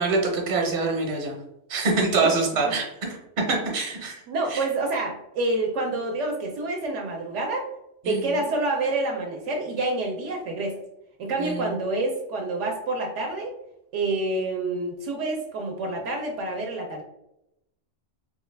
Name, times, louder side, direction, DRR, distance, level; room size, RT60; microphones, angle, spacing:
voice 1, 0.0-1.3 1.7-3.2 3.7-4.2 4.5-4.6 8.0-8.4 11.4-11.7, right 3 dB, 50° right, 0 dB, 0.9 m, -25 dB
voice 2, 4.3-7.7 8.0-10.8 11.2-13.5 13.9-17.0, right 2 dB, 80° right, 1 dB, 0.9 m, -28 dB
3.3 x 2.3 x 3.2 m, 0.84 s
omnidirectional pair, 1.2 m